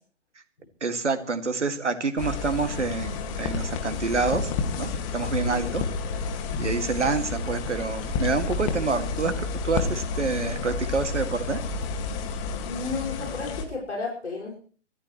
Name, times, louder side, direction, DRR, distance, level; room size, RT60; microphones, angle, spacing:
voice 1, 0.8-4.5 4.8-5.8 6.6-11.6, right 4 dB, 75° right, 8 dB, 2.3 m, -27 dB
sound 1, 2.2-13.6, left 4 dB, 25° left, 2.0 m, -30 dB
voice 2, 5.4-5.8 12.3-14.6, left 3 dB, 75° left, -2 dB, 5.9 m, -33 dB
24.0 x 14.5 x 3.2 m, 0.43 s
figure-of-eight pair, 130°, 36 cm